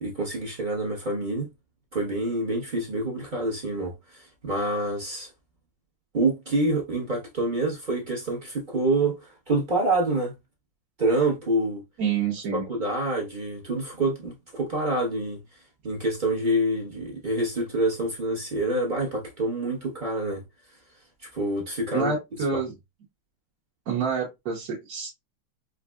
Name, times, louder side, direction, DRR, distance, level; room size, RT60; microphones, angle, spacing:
voice 1, 0.0-1.5 1.9-5.3 6.1-10.3 11.0-11.8 12.5-15.4 15.8-20.4 21.3-22.1, right 2 dB, 40° right, 0.7 m, -27 dB
voice 2, 12.0-12.6 21.9-22.7 23.9-25.1, right 5 dB, 55° right, 1.2 m, -27 dB
5.1 x 2.4 x 2.2 m
omnidirectional pair, 2.1 m